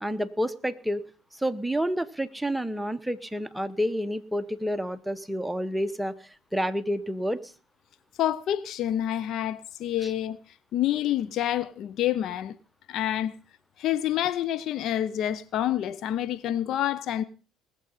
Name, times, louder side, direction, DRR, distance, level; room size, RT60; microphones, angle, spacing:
voice 1, 0.0-7.5 10.0-10.1, equal, 5° right, 1.0 m, -29 dB
voice 2, 8.2-10.4 10.7-12.5 12.9-13.3 13.8-17.2, left 11 dB, 60° left, 0.7 m, -27 dB
19.5 x 7.8 x 5.7 m
hypercardioid pair, 60°, 0 cm